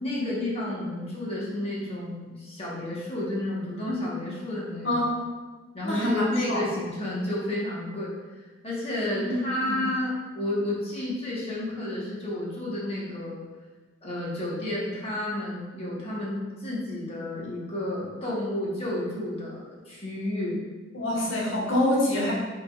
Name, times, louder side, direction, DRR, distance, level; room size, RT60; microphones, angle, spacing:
voice 1, 0.0-4.9 5.7-8.1 8.6-13.5 14.0-20.6, left 1 dB, 30° left, -6 dB, 1.2 m, -31 dB
voice 2, 4.8-5.2 5.8-6.7 9.1-9.2 9.6-9.8 20.9-22.3, left 1 dB, 75° left, -4 dB, 1.3 m, -26 dB
5.8 x 3.7 x 2.4 m, 1.3 s
head